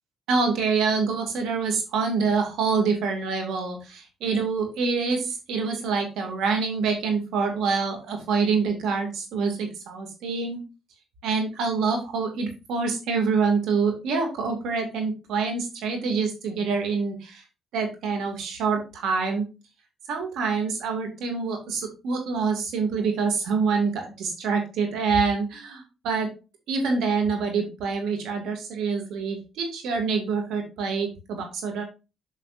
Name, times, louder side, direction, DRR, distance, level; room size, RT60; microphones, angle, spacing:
voice 1, 0.3-10.6 11.2-17.4 17.7-19.4 20.1-26.3 26.7-31.8, right 5 dB, 85° right, 3 dB, 2.4 m, -26 dB
7.5 x 6.7 x 2.6 m, 0.29 s
cardioid pair, 90°, 0 cm